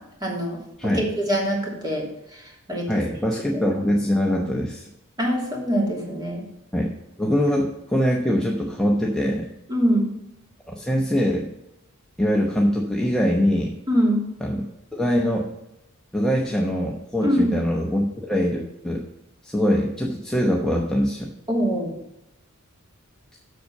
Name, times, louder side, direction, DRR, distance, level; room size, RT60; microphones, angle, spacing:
voice 1, 0.2-0.6 0.8-2.0 2.3-2.9 5.2-6.4 9.7-10.1 13.9-14.2 17.2-17.5 21.5-21.9, equal, 20° right, -2 dB, 2.8 m, -23 dB
voice 2, 2.9-4.9 6.7-6.9 7.2-9.5 10.8-11.5 12.2-13.8 14.4-14.6 14.9-15.5 16.1-19.0 19.4-21.3, equal, 5° left, -2 dB, 0.9 m, -23 dB
7.7 x 6.7 x 5.5 m, 0.85 s
head